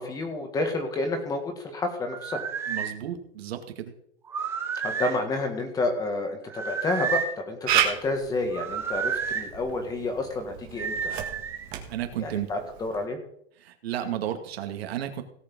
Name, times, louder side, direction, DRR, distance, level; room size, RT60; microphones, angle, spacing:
voice 1, 0.0-2.5 4.8-11.1 12.2-13.2, left 2 dB, 10° left, 6 dB, 1.7 m, -30 dB
sound 1, 2.1-2.9 4.3-5.2 6.5-7.4 8.5-9.5 10.8-11.7, right 6 dB, 10° right, 0.6 m, -30 dB
voice 2, 2.7-3.9 11.9-12.5 13.6-15.2, right 11 dB, 70° right, 5 dB, 2.3 m, -33 dB
Camera, 7.7-13.0, right 10 dB, 25° right, 1.7 m, -32 dB
17.5 x 7.0 x 5.5 m, 0.71 s
supercardioid pair, 170°, 32 cm